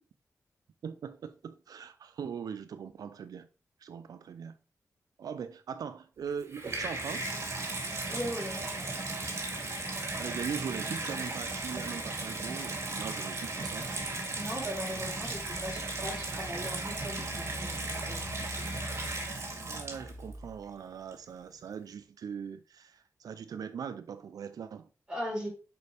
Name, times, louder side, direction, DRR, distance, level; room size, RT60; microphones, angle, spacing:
voice 1, 0.8-3.5 3.8-4.6 5.2-7.4 10.2-14.0 19.3-24.9, right 7 dB, 85° right, 0.4 m, -41 dB
Water tap faucet / Bathtub (filling or washing), 6.3-20.3 21.1-21.2, right 2 dB, 45° right, 2.0 m, -36 dB
voice 2, 8.1-8.9 14.4-17.7 18.1-18.2 25.1-25.5, equal, 15° right, 3.8 m, -38 dB
Engine, 14.9-20.7, left 1 dB, 20° left, 3.9 m, -45 dB
6.7 x 5.3 x 3.4 m
wide cardioid pair, 100°, 6 cm